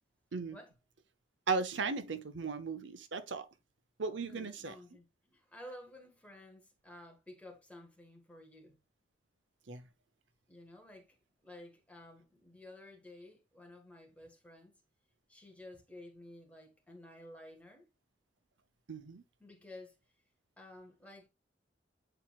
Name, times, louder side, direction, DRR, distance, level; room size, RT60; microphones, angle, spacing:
voice 1, 1.5-3.5 4.0-4.7 9.7-9.9 18.9-19.2, right 4 dB, 80° right, 0.8 m, -36 dB
voice 2, 4.2-8.8 10.5-14.8 15.3-17.9 19.4-19.9 20.6-21.3, left 1 dB, 5° left, 1.7 m, -53 dB
8.9 x 4.4 x 2.4 m
head